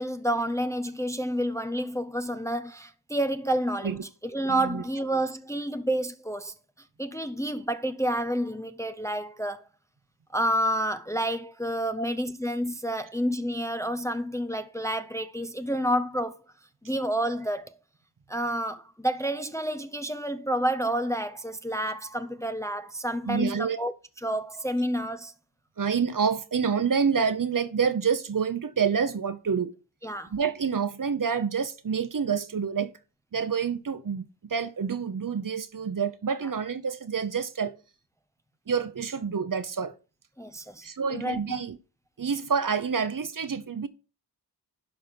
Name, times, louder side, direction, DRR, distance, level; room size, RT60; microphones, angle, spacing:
voice 1, 0.0-4.0 4.2-6.5 7.0-9.6 10.3-16.4 16.8-17.7 18.3-23.9 24.2-25.3 30.0-30.3 40.4-41.4, right 1 dB, 10° left, 0.6 m, -29 dB
voice 2, 4.5-4.8 12.0-12.1 23.3-23.8 25.8-29.7 30.3-32.9 33.3-34.2 34.5-37.8 38.7-39.9 40.8-41.8 42.2-43.9, right 6 dB, 50° right, 0.9 m, -27 dB
11.5 x 5.4 x 4.5 m
wide cardioid pair, 95°, 41 cm